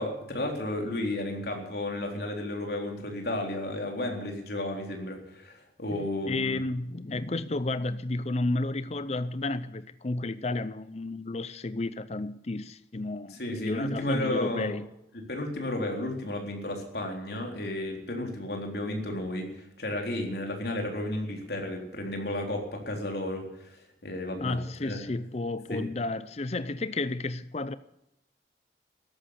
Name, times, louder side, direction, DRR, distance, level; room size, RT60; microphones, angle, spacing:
voice 1, 0.0-6.6 13.3-14.7 15.3-25.0 25.7-25.8, left 1 dB, 60° left, 3.8 m, -33 dB
voice 2, 5.9-14.9 24.4-27.7, left 2 dB, 35° left, 0.6 m, -32 dB
14.0 x 11.5 x 8.3 m
head